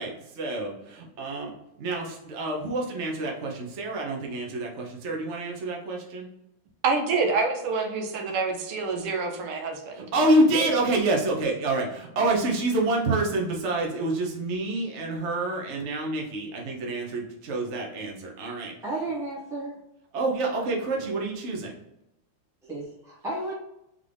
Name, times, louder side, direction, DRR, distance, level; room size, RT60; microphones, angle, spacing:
voice 1, 0.0-1.5 1.8-6.3 9.9-18.7 20.1-21.7, right 2 dB, 50° right, -1 dB, 0.8 m, -27 dB
voice 2, 6.8-10.1, right 4 dB, 85° right, 3 dB, 1.7 m, -27 dB
voice 3, 18.8-19.8 22.6-23.5, right 2 dB, ahead, -5 dB, 0.9 m, -33 dB
3.9 x 3.5 x 3.4 m, 0.89 s
omnidirectional pair, 2.4 m